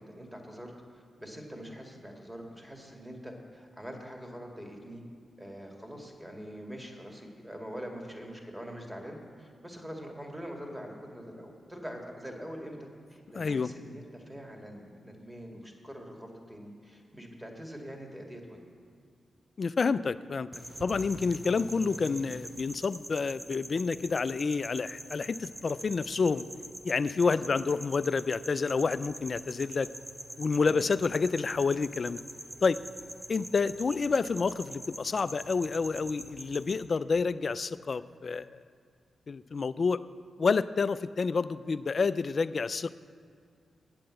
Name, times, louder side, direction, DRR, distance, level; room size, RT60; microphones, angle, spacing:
voice 1, 0.0-5.0 5.4-18.6 20.9-21.1 27.2-27.6 30.6-30.8, equal, 15° right, 1 dB, 2.1 m, -44 dB
voice 2, 13.4-13.7 19.6-20.5 20.8-26.4 26.8-29.9 30.4-32.2 32.6-32.8 33.3-38.5 39.3-40.0 40.4-42.9, left 4 dB, 55° left, 15 dB, 0.3 m, -29 dB
sound 1, 20.5-36.9, right 1 dB, 30° right, 1.1 m, -45 dB
8.6 x 7.8 x 7.6 m, 2.2 s
supercardioid pair, 45°, 0 cm